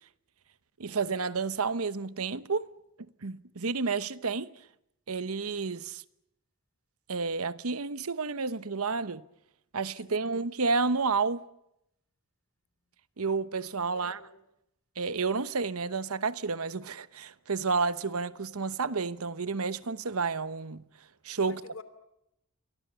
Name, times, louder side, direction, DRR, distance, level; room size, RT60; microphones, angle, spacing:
voice 1, 0.8-2.7 3.2-4.5 5.1-6.0 7.1-9.2 9.7-11.4 13.2-14.2 15.0-20.9 21.2-21.6, right 4 dB, 85° right, 1.0 m, -30 dB
voice 2, 13.9-14.5 21.4-21.8, left 3 dB, 60° left, 2.8 m, -49 dB
29.5 x 24.0 x 6.9 m
head